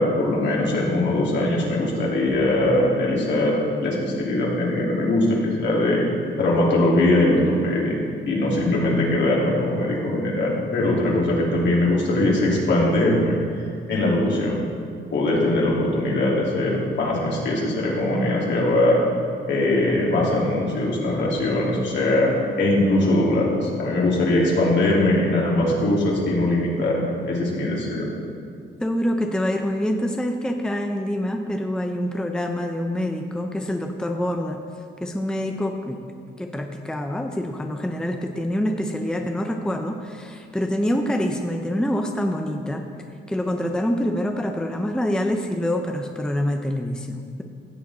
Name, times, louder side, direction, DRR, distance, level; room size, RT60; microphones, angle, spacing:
voice 1, 0.0-6.0 6.4-8.0 8.2-13.4 13.9-14.6 15.1-19.0 19.5-22.3 22.6-28.1, left 1 dB, 65° left, -4 dB, 3.1 m, -21 dB
voice 2, 28.8-34.6 35.0-42.9 43.3-47.4, equal, 5° left, 4 dB, 0.7 m, -26 dB
15.5 x 7.2 x 4.3 m, 2.3 s
cardioid pair, 90°, 20 cm